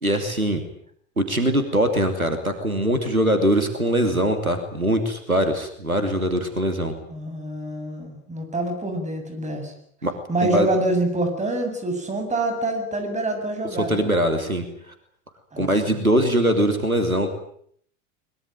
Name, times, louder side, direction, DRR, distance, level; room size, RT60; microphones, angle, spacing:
voice 1, 0.0-0.6 1.2-6.9 10.0-10.1 10.4-10.7 13.8-14.9 15.6-17.3, right 1 dB, 90° right, 8 dB, 2.9 m, -22 dB
voice 2, 7.1-9.7 10.3-14.1 15.5-16.0, right 2 dB, 15° right, 6 dB, 7.8 m, -26 dB
23.0 x 22.0 x 9.2 m, 0.65 s
figure-of-eight pair, 75°, 41 cm